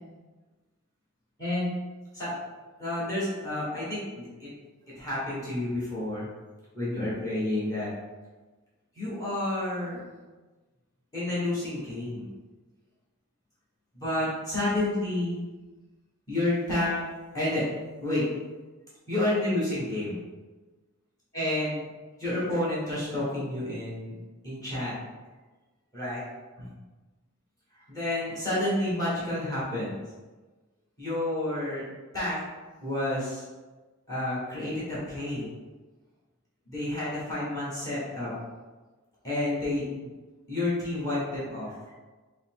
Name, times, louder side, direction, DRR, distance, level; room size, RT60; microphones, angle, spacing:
voice 1, 2.8-4.5 5.0-6.3 6.7-7.9 8.9-10.0 11.1-12.3 13.9-15.4 16.3-17.0 17.3-17.6 18.0-18.2 19.1-20.2 21.3-21.9 22.2-24.2 24.4-24.9 25.9-26.2 26.6-26.7 27.9-30.0 31.0-31.8 32.1-32.4 32.8-33.4 34.1-35.5 36.7-38.3 39.2-39.8 40.5-41.9, left 1 dB, 15° left, -9 dB, 1.4 m, -30 dB
5.3 x 2.1 x 3.6 m, 1.3 s
head